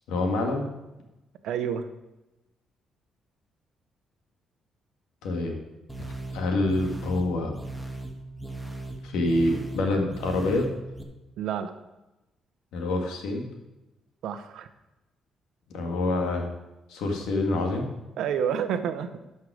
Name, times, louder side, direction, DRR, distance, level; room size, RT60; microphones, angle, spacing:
voice 1, 0.1-0.7 5.2-5.5 6.3-7.5 9.0-10.7 12.7-13.4 15.7-16.5 16.9-17.9, left 2 dB, 90° left, 2 dB, 1.9 m, -26 dB
voice 2, 1.4-1.9 11.4-11.7 14.2-14.7 18.2-19.1, right 8 dB, 80° right, 9 dB, 0.8 m, -29 dB
sound 1, 5.9-11.0, right 2 dB, ahead, 1.4 m, -38 dB
12.0 x 5.6 x 4.9 m, 1.0 s
cardioid pair, 90°, 0 cm